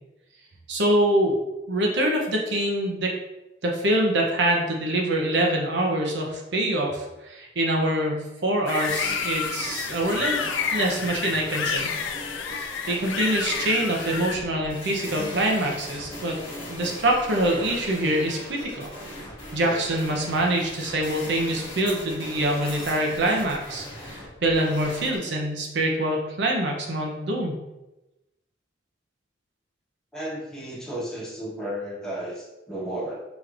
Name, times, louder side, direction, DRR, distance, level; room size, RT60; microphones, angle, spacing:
voice 1, 0.7-1.4 1.7-3.1 3.6-11.9 12.5-16.4 16.7-18.9 19.5-27.6, right 1 dB, 65° right, -1 dB, 0.7 m, -25 dB
sound 1, 8.7-14.4, left 6 dB, 85° left, 0.4 m, -30 dB
sound 2, 8.8-25.2, left 1 dB, 30° left, 1.3 m, -39 dB
voice 2, 30.1-33.2, right 1 dB, 5° left, -6 dB, 1.1 m, -33 dB
4.8 x 3.0 x 2.5 m, 0.99 s
head